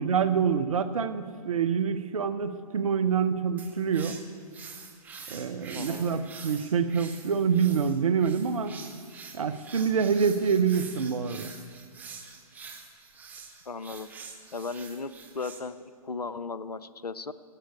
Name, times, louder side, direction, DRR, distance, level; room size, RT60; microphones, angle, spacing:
voice 1, 0.0-4.2 5.3-8.7 9.3-11.5, right 6 dB, 60° right, 11 dB, 0.8 m, -26 dB
sound 1, 3.6-15.6, right 5 dB, 10° right, 0.8 m, -46 dB
voice 2, 5.7-6.2 13.7-14.1 14.5-15.8 16.0-17.3, left 4 dB, 85° left, 15 dB, 0.6 m, -36 dB
17.0 x 7.7 x 8.2 m, 2.1 s
figure-of-eight pair, 125°, 20 cm